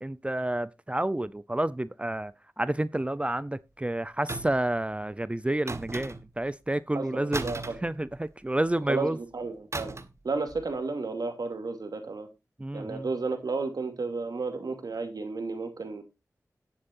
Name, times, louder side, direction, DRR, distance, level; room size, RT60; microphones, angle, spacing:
voice 1, 0.0-9.2 12.6-13.1, right 1 dB, 20° right, 0.6 m, -30 dB
sound 1, 4.3-4.7 5.7-6.4 7.3-8.5 9.7-10.2 10.5-10.7, right 3 dB, 45° right, 1.3 m, -37 dB
voice 2, 6.9-7.7 8.9-9.9 10.2-12.3 12.7-16.0, right 3 dB, 85° right, 2.6 m, -32 dB
17.5 x 7.4 x 2.6 m
wide cardioid pair, 70°, 6 cm